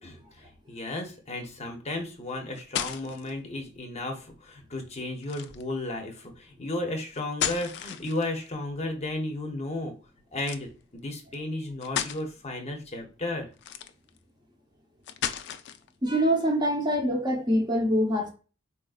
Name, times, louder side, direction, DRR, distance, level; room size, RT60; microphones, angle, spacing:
voice 1, 0.0-9.9 10.3-13.5, left 2 dB, 30° left, 0.7 m, -34 dB
sound 1, 2.3-3.3 5.2-5.7 7.1-8.5 10.4-10.6 11.3-11.4 11.8-12.2 13.5-14.2 15.1-15.9, left 9 dB, 55° left, 0.3 m, -33 dB
voice 2, 16.0-18.3, equal, 20° right, 0.7 m, -24 dB
4.0 x 2.6 x 2.3 m
head